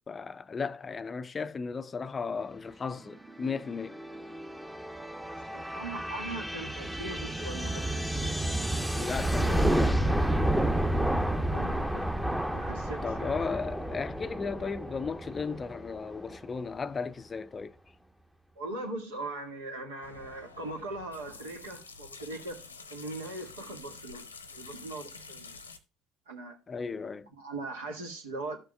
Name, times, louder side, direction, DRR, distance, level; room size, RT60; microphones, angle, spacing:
voice 1, 0.0-4.0 8.9-10.1 13.0-17.8 26.7-27.3, left 5 dB, 30° left, 0.5 m, -35 dB
sound 1, 3.1-16.6, right 1 dB, 5° right, 0.9 m, -31 dB
voice 2, 5.3-8.3 11.5-13.3 18.5-22.6 22.9-25.6 26.2-26.6 27.4-28.6, right 2 dB, 75° right, 1.8 m, -40 dB
sound 2, 20.0-25.8, left 4 dB, 85° left, 0.8 m, -48 dB
13.5 x 6.8 x 2.2 m
figure-of-eight pair, 60°, 0 cm